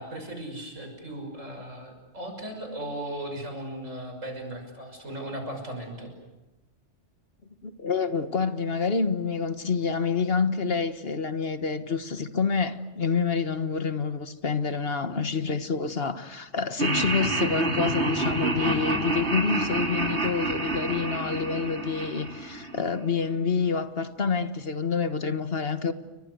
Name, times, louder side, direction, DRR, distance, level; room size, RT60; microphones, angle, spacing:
voice 1, 0.0-6.1, right 1 dB, 90° right, 6.4 m, -37 dB
voice 2, 7.6-25.9, left 5 dB, 50° left, 1.5 m, -27 dB
Laughter, 16.8-23.0, right 2 dB, 60° right, 3.2 m, -28 dB
29.5 x 24.0 x 8.0 m
omnidirectional pair, 1.3 m